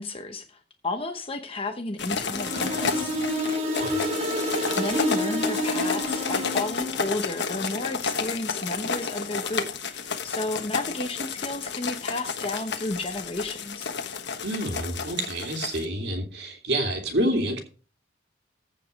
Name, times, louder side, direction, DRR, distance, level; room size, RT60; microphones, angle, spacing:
voice 1, 0.0-3.1 4.8-13.9, left 2 dB, 30° left, 5 dB, 1.0 m, -32 dB
sound 1, 2.0-15.8, left 5 dB, 60° left, 1.3 m, -31 dB
sound 2, 2.3-7.1, left 1 dB, 35° right, 1.9 m, -29 dB
voice 2, 14.4-17.6, right 1 dB, 60° right, 3 dB, 2.5 m, -28 dB
15.0 x 5.1 x 5.2 m, 0.37 s
head